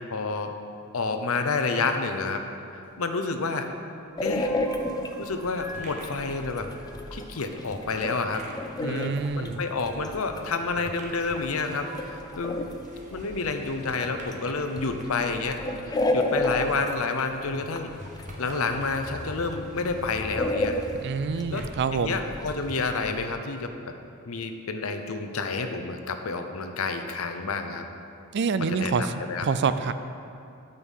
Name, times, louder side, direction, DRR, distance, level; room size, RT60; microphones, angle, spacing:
voice 1, 0.1-0.5 0.9-2.4 2.7-3.7 4.2-4.5 5.2-6.7 7.1-8.4 8.8-12.6 13.1-15.6 15.9-17.9 18.4-20.8 21.5-21.6 21.9-23.9 24.3-27.8 28.7-29.5, left 4 dB, 75° left, 6 dB, 0.7 m, -29 dB
sound 1, 2.8-3.8 4.0-5.9 6.2-8.7 9.7-9.8 10.8-11.4 11.7-12.0, equal, 10° right, 1.2 m, -47 dB
sound 2, 4.2-23.3, left 1 dB, 20° left, 0.5 m, -33 dB
sound 3, 5.4-21.6, right 2 dB, 35° right, 0.9 m, -50 dB
voice 2, 8.8-9.6 21.0-22.2 28.3-29.1 29.4-29.9, right 5 dB, 55° right, 11 dB, 0.4 m, -27 dB
8.8 x 5.6 x 6.4 m, 2.5 s
head